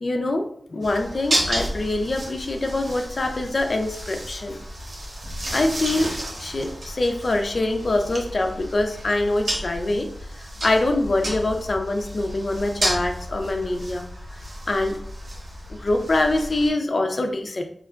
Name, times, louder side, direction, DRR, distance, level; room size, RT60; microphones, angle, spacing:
voice 1, 0.0-4.6 5.5-10.1 10.4-14.1 14.7-15.0 15.7-17.6, left 2 dB, 60° left, 5 dB, 0.4 m, -24 dB
sound 1, 0.8-16.7, right 1 dB, 85° right, 0.8 m, -32 dB
4.4 x 2.2 x 2.3 m, 0.64 s
wide cardioid pair, 60°, 0 cm